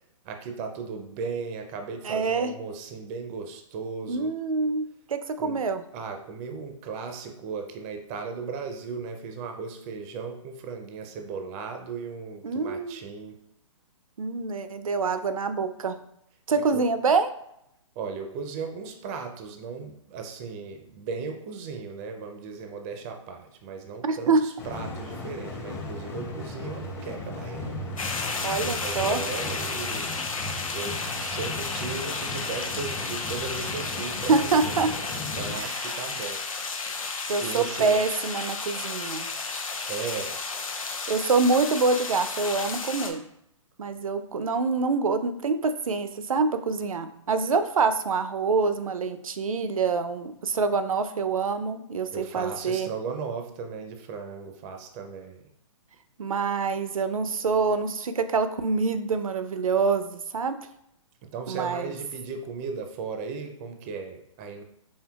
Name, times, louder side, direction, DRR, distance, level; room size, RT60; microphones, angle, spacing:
voice 1, 0.2-4.3 5.4-5.6 5.9-13.4 16.5-16.9 18.0-28.0 28.5-30.2 30.7-36.4 37.0-38.0 39.9-40.4 52.1-55.5 61.2-64.6, right 5 dB, 25° right, 5 dB, 0.4 m, -36 dB
voice 2, 2.0-2.5 4.1-5.8 12.4-13.0 14.2-16.0 16.5-17.3 24.0-24.4 28.4-29.2 34.3-34.9 35.6-36.0 37.3-39.3 41.1-43.2 43.8-52.9 56.2-60.6 61.5-61.9, right 4 dB, 85° right, 10 dB, 0.5 m, -26 dB
sound 1, 24.6-35.6, left 2 dB, 15° left, 0.6 m, -37 dB
sound 2, 28.0-43.1, left 4 dB, 85° left, 0.7 m, -32 dB
4.5 x 3.3 x 2.3 m, 0.77 s
hypercardioid pair, 130°, 17 cm